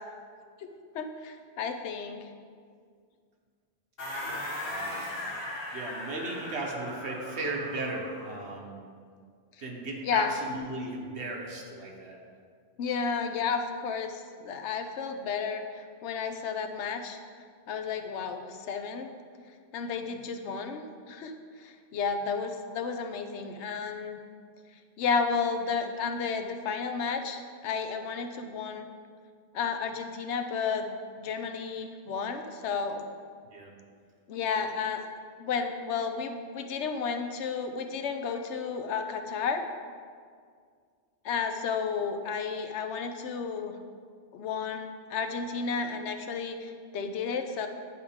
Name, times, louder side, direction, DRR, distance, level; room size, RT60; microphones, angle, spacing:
voice 1, 0.9-2.2 10.1-10.3 12.8-17.2 17.7-19.1 19.7-21.3 21.6-24.2 25.0-28.9 29.5-33.0 34.3-35.1 35.4-39.6 41.2-43.7 44.3-47.7, left 5 dB, 90° left, 6 dB, 0.9 m, -32 dB
sound 1, 4.0-8.4, left 1 dB, 55° left, 1.7 m, -38 dB
voice 2, 4.2-5.1 5.7-8.8 9.6-12.2 33.5-33.7, right 2 dB, 75° right, 0 dB, 1.3 m, -36 dB
9.8 x 4.8 x 3.5 m, 2.1 s
omnidirectional pair, 1.1 m